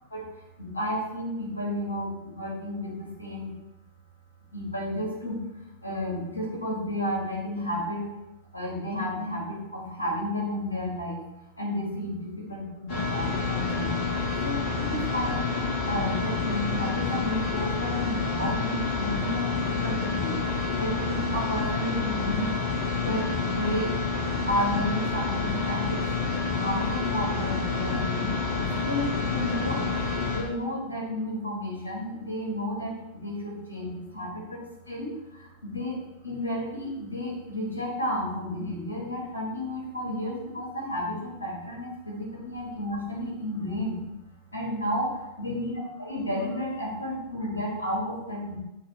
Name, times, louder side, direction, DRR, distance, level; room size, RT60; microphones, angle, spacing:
voice 1, 0.6-2.9 3.2-3.5 4.5-5.4 5.8-8.0 8.5-11.2 11.6-13.9 14.4-20.4 20.8-22.5 23.0-23.9 24.5-26.0 26.5-28.3 28.8-29.9 30.2-34.6 34.9-35.1 35.6-36.0 36.2-44.0 44.5-45.1 45.4-45.7 46.0-48.6, left 1 dB, 80° left, -3 dB, 1.9 m, -32 dB
Fluorescent lightbulb hum buzz (Extended), 12.9-30.4, left 4 dB, 45° left, 1.9 m, -28 dB
7.4 x 3.5 x 4.6 m, 0.94 s
figure-of-eight pair, 90°, 0 cm